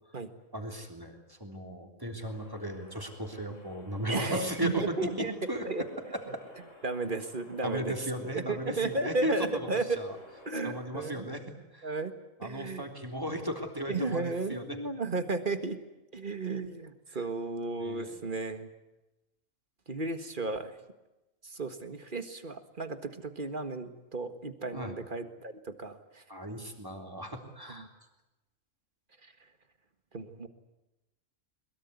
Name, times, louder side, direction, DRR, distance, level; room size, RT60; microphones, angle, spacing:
voice 1, 0.5-6.4 7.6-9.6 10.0-10.2 10.6-11.4 11.7-11.9 12.4-14.8 17.8-18.3 24.7-25.0 26.3-27.9, equal, 15° right, 4 dB, 3.5 m, -36 dB
allmost there, 2.3-10.8, left 2 dB, 65° left, 4.7 m, -55 dB
voice 2, 4.1-5.3 5.6-5.8 6.8-7.9 8.2-10.0 10.4-11.3 11.8-12.1 12.4-12.9 13.9-15.8 16.1-18.7 19.9-20.8 21.4-26.2 27.7-27.9 29.2-29.3 30.1-30.5, right 3 dB, 40° right, 9 dB, 1.8 m, -34 dB
22.5 x 22.0 x 9.6 m, 0.99 s
omnidirectional pair, 1.4 m